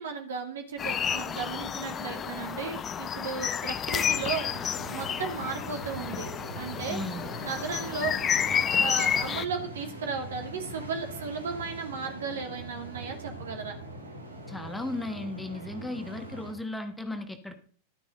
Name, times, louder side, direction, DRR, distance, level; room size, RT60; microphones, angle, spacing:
voice 1, 0.0-4.5 4.8-6.3 6.5-7.0 7.4-13.8, right 5 dB, 65° right, 5 dB, 2.6 m, -35 dB
sound 1, 0.8-9.4, left 8 dB, 25° left, 0.7 m, -30 dB
sound 2, 3.9-16.5, right 2 dB, 80° right, 2.7 m, -42 dB
voice 2, 6.9-7.3 14.5-17.6, left 2 dB, 5° left, 7 dB, 1.3 m, -35 dB
12.5 x 9.5 x 3.9 m, 0.41 s
figure-of-eight pair, 90°, 0 cm